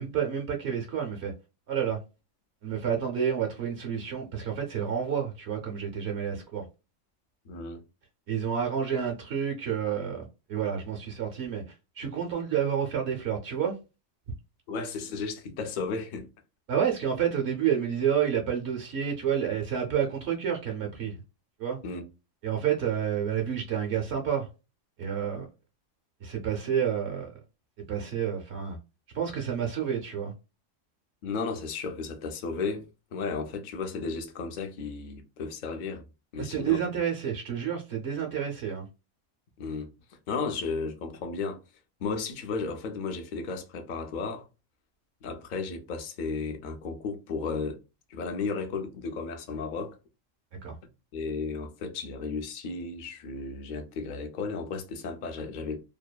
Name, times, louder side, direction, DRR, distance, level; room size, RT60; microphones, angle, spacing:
voice 1, 0.0-1.3 1.7-2.0 2.6-6.6 8.3-11.6 12.0-13.7 16.7-21.2 21.6-21.8 22.4-24.5 25.0-25.5 26.2-27.4 27.9-28.8 29.1-30.3 36.4-38.9 50.6-50.8, right 8 dB, 65° right, 0.8 m, -29 dB
voice 2, 7.4-7.8 14.7-16.3 21.8-22.0 31.2-36.0 36.3-36.8 39.6-41.6 42.0-44.5 45.2-47.8 48.1-50.0 51.1-55.8, left 4 dB, 60° left, 0.5 m, -34 dB
2.7 x 2.2 x 2.2 m
omnidirectional pair, 1.4 m